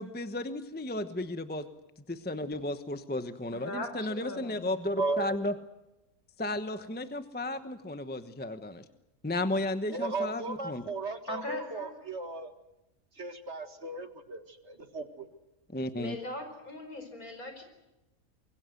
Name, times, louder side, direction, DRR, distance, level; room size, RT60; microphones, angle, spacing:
voice 1, 0.0-1.6 2.3-5.5 6.4-8.8 9.2-10.8 15.7-16.2, left 1 dB, 10° left, 9 dB, 0.9 m, -34 dB
voice 2, 3.5-4.7 11.3-11.9 15.9-17.6, left 1 dB, 70° left, 6 dB, 5.2 m, -40 dB
voice 3, 5.0-5.4 9.9-12.5 13.2-15.3, right 3 dB, 45° right, 8 dB, 2.0 m, -35 dB
25.0 x 22.0 x 7.8 m, 0.96 s
omnidirectional pair, 1.6 m